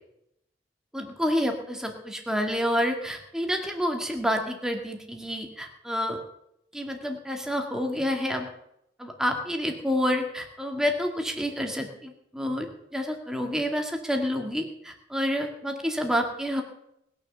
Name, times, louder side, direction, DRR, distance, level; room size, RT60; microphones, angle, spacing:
voice 1, 0.9-6.2 6.7-8.5 9.0-12.7 12.9-16.6, equal, 5° right, 3 dB, 2.0 m, -28 dB
20.0 x 6.9 x 6.8 m, 0.77 s
head